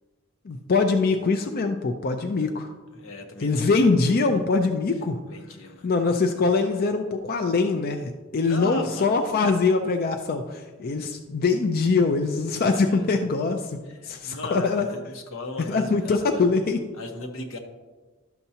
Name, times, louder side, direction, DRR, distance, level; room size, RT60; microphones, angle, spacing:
voice 1, 0.5-2.7 3.4-5.2 5.8-13.8 14.0-14.9 15.7-16.8, left 4 dB, 50° left, 5 dB, 0.4 m, -23 dB
voice 2, 2.9-3.9 5.3-5.9 8.4-9.2 12.5-13.2 13.8-16.2 16.9-17.6, left 2 dB, 85° left, 3 dB, 1.1 m, -38 dB
11.5 x 6.7 x 2.8 m, 1.3 s
head